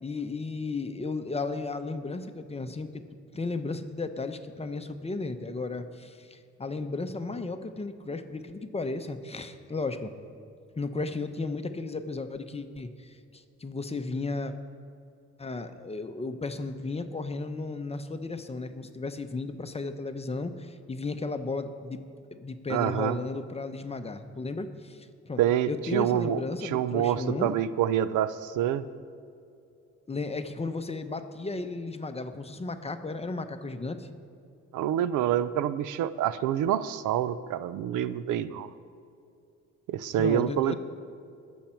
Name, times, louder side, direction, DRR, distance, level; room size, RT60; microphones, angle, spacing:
voice 1, 0.0-3.0 3.3-10.1 10.8-14.5 15.4-22.0 22.4-25.4 25.7-27.5 30.1-34.1 40.1-40.8, left 3 dB, 20° left, 8 dB, 0.8 m, -34 dB
voice 2, 22.7-23.2 25.4-28.8 34.7-38.7 39.9-40.8, right 10 dB, 85° right, 15 dB, 0.5 m, -27 dB
21.0 x 7.3 x 4.5 m, 2.5 s
cardioid pair, 90°, 30 cm